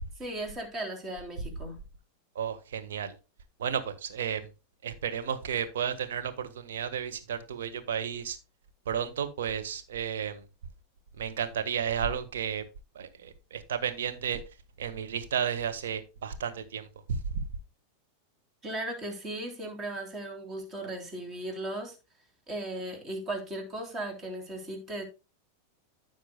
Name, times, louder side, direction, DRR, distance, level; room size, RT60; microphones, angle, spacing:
voice 1, 0.2-1.8 18.6-22.0 22.5-25.0, right 1 dB, 25° right, 4 dB, 3.4 m, -37 dB
voice 2, 2.3-3.1 3.6-4.5 4.8-8.4 8.8-10.4 11.2-12.6 12.9-14.4 14.8-17.2, right 8 dB, 60° right, 8 dB, 1.5 m, -33 dB
15.0 x 6.0 x 2.3 m, 0.30 s
figure-of-eight pair, 90°, 0 cm